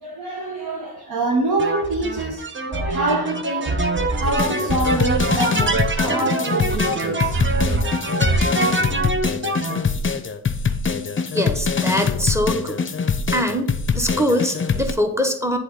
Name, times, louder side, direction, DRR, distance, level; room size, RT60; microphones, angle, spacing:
voice 1, 0.0-3.8 4.2-7.4, right 2 dB, 70° right, 1.1 m, -25 dB
sound 1, 1.6-9.8, right 2 dB, 30° right, 0.8 m, -24 dB
sound 2, 4.2-14.9, left 5 dB, 30° left, 0.6 m, -24 dB
voice 2, 11.3-12.8 13.3-15.6, equal, 5° right, 1.0 m, -23 dB
7.6 x 3.5 x 3.7 m
cardioid pair, 45°, 38 cm